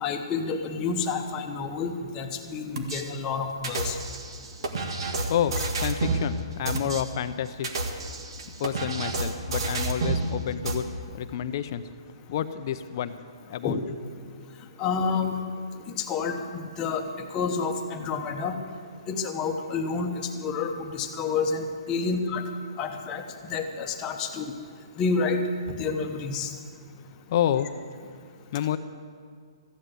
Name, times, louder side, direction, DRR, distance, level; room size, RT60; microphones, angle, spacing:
voice 1, 0.0-4.0 13.6-13.8 14.8-15.4 16.0-18.6 19.1-20.1 20.4-22.4 22.8-23.2 23.5-24.5 25.0-25.4 25.7-26.5, left 5 dB, 20° left, 4 dB, 1.0 m, -29 dB
sound 1, 2.7-3.0 3.6-6.2 6.6-7.0 7.5-10.2 10.6-10.7, right 3 dB, 65° right, 1.8 m, -29 dB
voice 2, 5.3-7.7 8.6-10.9 11.1-11.9 12.3-13.1 13.5-13.8 27.3-27.7 28.5-28.8, left 10 dB, 45° left, 11 dB, 0.6 m, -29 dB
14.5 x 9.7 x 7.8 m, 2.1 s
hypercardioid pair, 155°, 3 cm